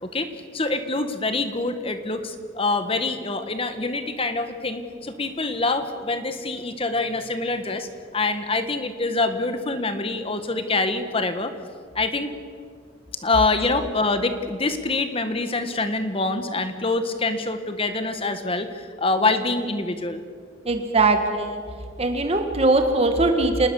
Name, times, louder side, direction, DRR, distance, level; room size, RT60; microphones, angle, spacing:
voice 1, 0.5-11.5 11.9-12.3 13.2-20.2, left 3 dB, 30° left, 9 dB, 1.5 m, -25 dB
voice 2, 20.7-21.6 22.0-23.7, right 2 dB, 30° right, 5 dB, 1.7 m, -20 dB
27.0 x 19.5 x 7.1 m, 2.1 s
head